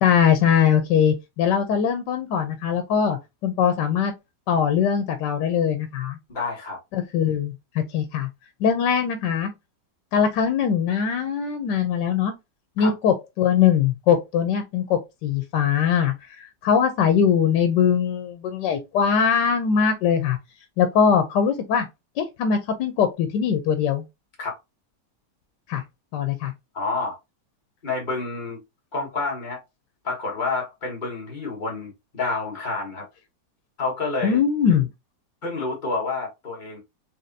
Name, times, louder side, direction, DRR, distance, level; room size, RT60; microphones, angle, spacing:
voice 1, 0.0-4.1 4.5-6.2 6.9-8.3 8.6-9.5 10.1-12.3 12.8-16.1 16.6-20.4 20.8-21.9 22.2-24.0 25.7-25.8 26.1-26.5 34.2-34.9, left 7 dB, 85° left, 1.3 m, -21 dB
voice 2, 6.3-6.8 12.8-12.9 24.4-24.6 26.7-27.2 27.8-28.6 28.9-29.6 30.0-33.1 33.8-34.4 35.4-36.8, left 3 dB, 30° left, 1.5 m, -29 dB
4.2 x 3.3 x 2.6 m
omnidirectional pair, 1.9 m